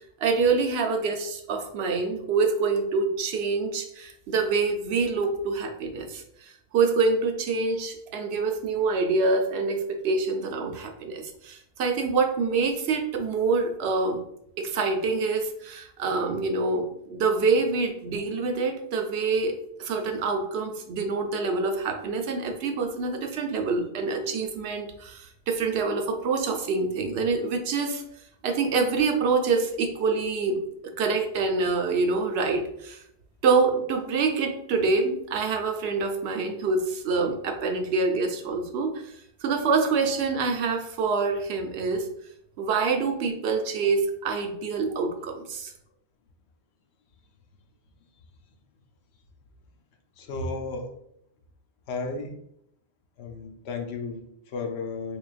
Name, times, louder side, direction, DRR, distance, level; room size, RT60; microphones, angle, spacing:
voice 1, 0.2-14.2 14.6-19.5 19.8-28.0 28.4-30.6 31.0-33.0 33.4-39.0 39.4-42.1 42.6-45.7, right 4 dB, 75° right, 4 dB, 0.8 m, -26 dB
voice 2, 50.2-50.9 51.9-52.4 53.2-55.2, left 3 dB, 80° left, 4 dB, 0.9 m, -33 dB
3.8 x 3.2 x 2.4 m, 0.74 s
omnidirectional pair, 1.1 m